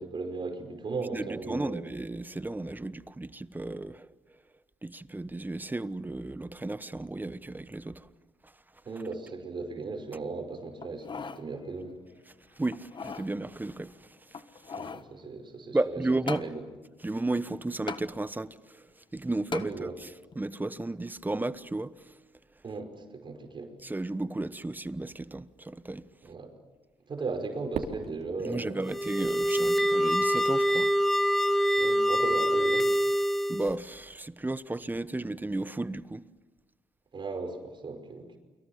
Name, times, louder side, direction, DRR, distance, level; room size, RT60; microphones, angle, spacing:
voice 1, 0.0-1.9 8.9-12.0 14.8-15.8 16.3-16.6 19.6-20.0 22.6-23.7 26.2-26.5 27.1-28.8 31.8-32.9 37.1-38.4, right 3 dB, 45° right, 5.5 m, -37 dB
voice 2, 1.1-4.1 4.8-8.1 8.4-8.5 12.6-14.8 15.7-16.4 17.0-20.1 20.3-22.1 23.8-26.1 28.4-30.9 33.5-36.2, right 2 dB, 15° right, 1.1 m, -34 dB
sound 1, 10.8-11.4 11.9-12.0 12.7-13.3 14.3-15.1 16.3-16.5 17.9-18.1 19.5-19.7 20.3-20.4, left 5 dB, 45° left, 1.5 m, -38 dB
Fireworks, 27.7-30.1, right 6 dB, 70° right, 3.4 m, -41 dB
sound 2, 28.8-33.7, equal, ahead, 1.8 m, -25 dB
29.5 x 24.0 x 7.4 m
supercardioid pair, 60°, 11 cm